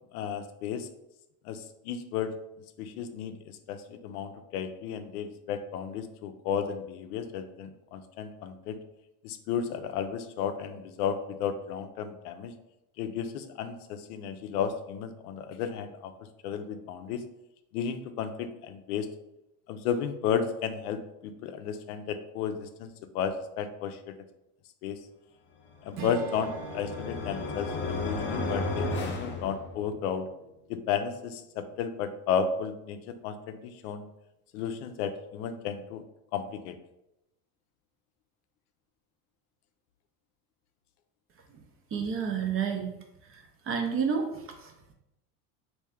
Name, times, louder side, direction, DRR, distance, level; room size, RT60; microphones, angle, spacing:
voice 1, 0.1-0.9 1.5-2.3 2.8-3.3 3.7-8.8 9.2-12.5 13.0-16.1 16.4-17.2 17.7-19.1 19.7-24.1 24.8-25.0 25.9-30.3 30.7-34.1 34.5-36.0 36.3-36.8, left 7 dB, 75° left, 9 dB, 0.5 m, -33 dB
sound 1, 25.8-30.1, left 2 dB, 25° left, 0.6 m, -34 dB
Strum, 25.9-30.6, right 5 dB, 80° right, 0.9 m, -44 dB
voice 2, 41.9-42.9 43.3-44.7, right 6 dB, 30° right, 4 dB, 0.5 m, -30 dB
3.2 x 2.7 x 3.4 m, 0.87 s
hypercardioid pair, 90°, 46 cm